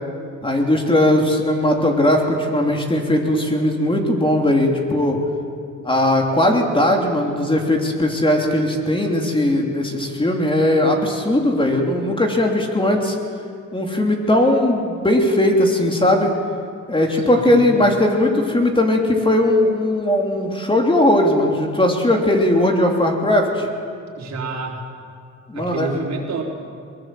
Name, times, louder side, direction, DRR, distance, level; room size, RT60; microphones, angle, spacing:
voice 1, 0.4-5.2 5.8-13.1 13.7-16.3 16.9-23.7 25.5-25.9, left 1 dB, 15° left, 1 dB, 3.1 m, -18 dB
voice 2, 17.1-17.7 24.2-24.8 25.5-26.4, right 4 dB, 60° right, 0 dB, 4.2 m, -29 dB
22.0 x 20.0 x 7.7 m, 2.3 s
cardioid pair, 90°, 30 cm